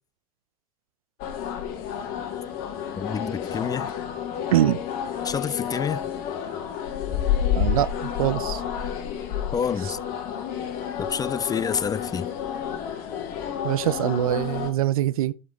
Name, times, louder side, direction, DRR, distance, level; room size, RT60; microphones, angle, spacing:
sound 1, 1.2-14.7, left 9 dB, 55° left, 1.7 m, -30 dB
voice 1, 3.0-3.9 5.2-6.0 9.5-10.0 11.0-12.3, left 7 dB, 20° left, 0.4 m, -28 dB
voice 2, 7.5-8.6 13.6-15.3, right 13 dB, 80° right, 0.5 m, -23 dB
11.5 x 4.3 x 4.6 m
hypercardioid pair, 80°, 18 cm